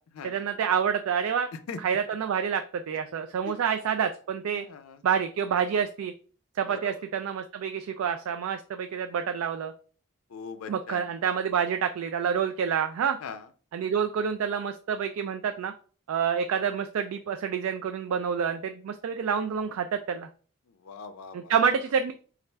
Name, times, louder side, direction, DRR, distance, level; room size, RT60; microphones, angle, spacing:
voice 1, 0.2-1.5 1.8-4.6 5.0-6.1 6.6-9.7 10.7-13.2 13.7-15.7 16.1-20.3 21.3-22.1, right 7 dB, 75° right, 7 dB, 0.3 m, -28 dB
voice 2, 4.5-5.0 6.7-6.9 10.3-11.1 13.2-13.5 20.8-21.5, left 5 dB, 75° left, 9 dB, 0.4 m, -40 dB
4.2 x 2.4 x 3.3 m, 0.40 s
head